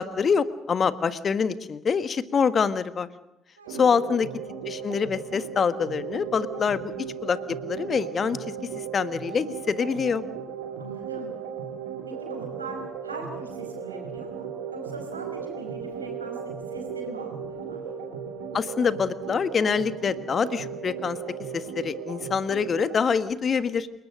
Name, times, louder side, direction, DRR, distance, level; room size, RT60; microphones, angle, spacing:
voice 1, 0.0-3.1 3.8-4.3 4.6-6.9 7.2-8.5 8.9-10.2 18.5-21.2 21.5-23.9, left 6 dB, 35° left, 14 dB, 1.5 m, -25 dB
voice 2, 3.6-3.9 10.8-11.3 12.1-17.8, right 3 dB, 85° right, 3 dB, 5.0 m, -40 dB
sound 1, 3.7-23.0, right 7 dB, 65° right, 3.7 m, -36 dB
29.5 x 19.0 x 6.5 m, 0.89 s
figure-of-eight pair, 50°, 0 cm